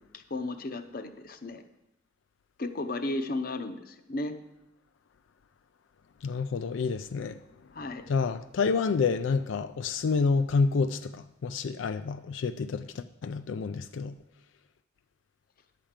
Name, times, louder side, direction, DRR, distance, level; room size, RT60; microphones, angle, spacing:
voice 1, 0.0-1.6 2.6-4.4 7.7-8.0, left 2 dB, 50° left, 0.7 m, -34 dB
voice 2, 6.2-7.4 8.1-14.2, left 4 dB, 85° left, 0.4 m, -28 dB
10.5 x 5.0 x 7.3 m
head